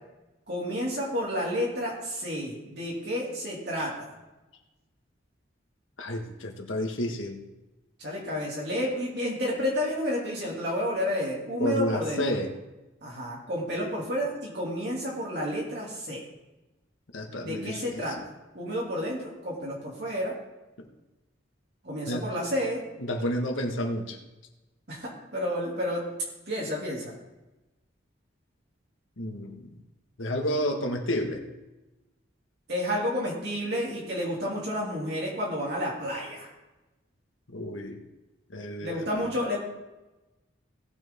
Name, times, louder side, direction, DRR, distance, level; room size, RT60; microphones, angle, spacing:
voice 1, 0.5-4.1 8.0-12.2 13.0-16.2 17.4-18.2 18.5-20.3 21.8-22.8 24.9-26.0 26.5-27.1 32.7-36.5 38.8-39.6, equal, 55° right, -5 dB, 2.7 m, -30 dB
voice 2, 6.0-7.4 11.6-12.5 17.1-18.1 20.8-20.9 22.1-22.2 23.0-24.2 29.2-29.7 30.2-31.4 37.5-38.0 38.5-39.0, equal, 85° left, 3 dB, 1.6 m, -30 dB
18.0 x 6.8 x 3.7 m, 1.1 s
head